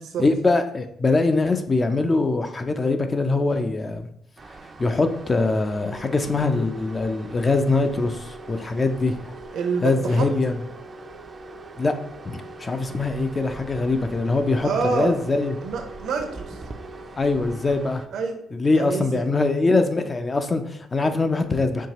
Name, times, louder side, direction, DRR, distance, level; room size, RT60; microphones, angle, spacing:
voice 1, 0.2-4.1 4.8-9.3 9.8-10.5 11.8-11.9 12.3-15.6 17.2-18.0 18.5-21.9, left 3 dB, 30° left, 8 dB, 0.4 m, -23 dB
sound 1, 4.4-18.1, right 3 dB, 35° right, 0.4 m, -44 dB
sound 2, 4.8-18.0, right 1 dB, 75° left, 1.0 m, -44 dB
voice 2, 9.5-10.3 14.6-15.2 15.6-16.6 18.1-18.4 18.7-19.3, right 5 dB, 75° right, 4 dB, 0.7 m, -27 dB
4.5 x 2.8 x 2.9 m, 0.71 s
cardioid pair, 90°, 0 cm